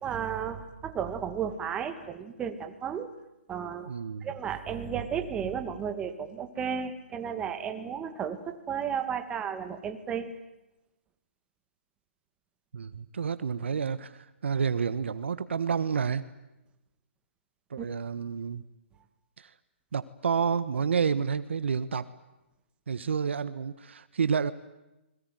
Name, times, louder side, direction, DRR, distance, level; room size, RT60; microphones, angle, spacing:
voice 1, 0.0-3.1 3.5-3.9 4.2-10.4 17.8-17.9, right 7 dB, 15° right, 7 dB, 2.3 m, -33 dB
voice 2, 3.9-4.3 12.7-16.3 17.7-18.6 19.4-19.5 19.9-22.0 22.9-24.5, right 6 dB, 70° right, 13 dB, 1.5 m, -29 dB
29.0 x 21.5 x 9.4 m, 0.97 s
hypercardioid pair, 140°, 7 cm